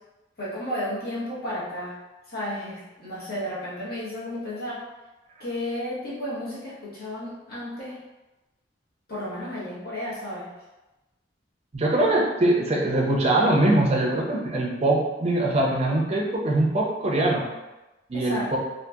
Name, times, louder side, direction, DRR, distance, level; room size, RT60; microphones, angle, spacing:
voice 1, 0.4-1.9 2.3-4.8 5.4-8.0 9.1-10.5 18.1-18.6, left 1 dB, 55° left, -8 dB, 1.0 m, -33 dB
voice 2, 11.7-17.5 18.1-18.6, right 1 dB, 35° right, -2 dB, 0.5 m, -22 dB
2.7 x 2.6 x 2.3 m, 1.0 s
head